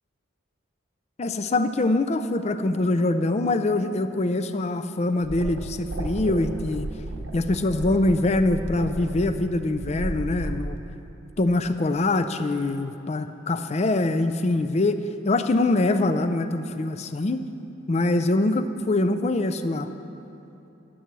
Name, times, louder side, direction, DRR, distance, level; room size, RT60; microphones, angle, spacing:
voice 1, 1.2-6.9 7.3-10.8 11.4-15.0 15.2-17.4 17.9-19.9, left 2 dB, 35° left, 10 dB, 0.4 m, -24 dB
sound 1, 5.2-10.8, right 1 dB, 70° right, 0.8 m, -33 dB
11.0 x 7.7 x 6.1 m, 3.0 s
head